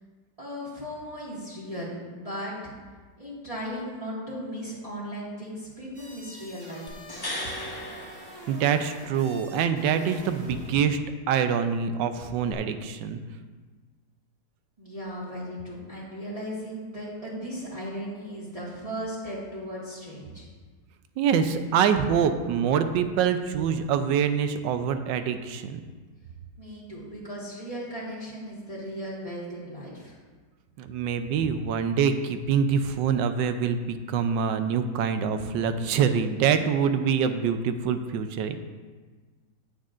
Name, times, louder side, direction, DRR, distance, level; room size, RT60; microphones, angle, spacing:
voice 1, 0.4-2.7 3.2-7.0 14.8-20.5 26.6-30.2, equal, 20° right, -8 dB, 1.9 m, -37 dB
sound 1, 5.9-10.8, right 2 dB, 35° right, 1.3 m, -45 dB
sound 2, 6.9-9.1 12.5-12.6, left 1 dB, 25° left, 0.5 m, -37 dB
voice 2, 8.5-11.0 11.3-13.2 21.2-25.8 30.8-38.5, right 7 dB, 85° right, 9 dB, 1.3 m, -25 dB
15.5 x 6.4 x 2.5 m, 1.4 s
omnidirectional pair, 1.9 m